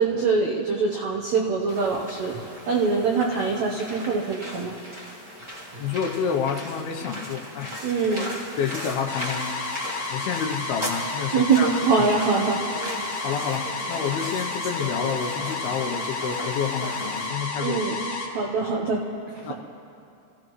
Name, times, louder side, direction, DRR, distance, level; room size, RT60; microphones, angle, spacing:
voice 1, 0.0-2.3 2.7-4.7 7.8-8.3 11.3-12.6 17.6-18.1 18.3-19.0, right 4 dB, 90° right, -1 dB, 1.6 m, -23 dB
sound 1, 1.7-17.3, equal, 25° right, 0.6 m, -38 dB
voice 2, 5.8-7.7 8.1-8.3 8.6-9.5 10.1-11.8 13.2-17.8 19.4-19.5, left 7 dB, 75° left, 3 dB, 2.6 m, -29 dB
sound 2, 9.1-18.3, left 3 dB, 50° left, 1.8 m, -31 dB
27.5 x 16.0 x 3.1 m, 2.5 s
omnidirectional pair, 4.8 m